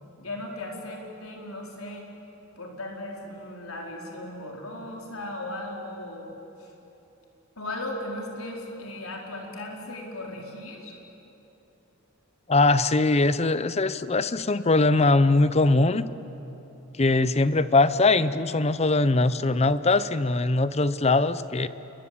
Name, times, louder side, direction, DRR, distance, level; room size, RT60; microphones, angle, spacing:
voice 1, 0.2-2.1 2.6-6.3 6.6-6.7 7.6-10.9, left 1 dB, 85° left, 0 dB, 4.6 m, -37 dB
voice 2, 12.5-16.1 17.0-21.7, left 2 dB, 30° left, 15 dB, 0.7 m, -21 dB
28.5 x 22.5 x 8.7 m, 3.0 s
head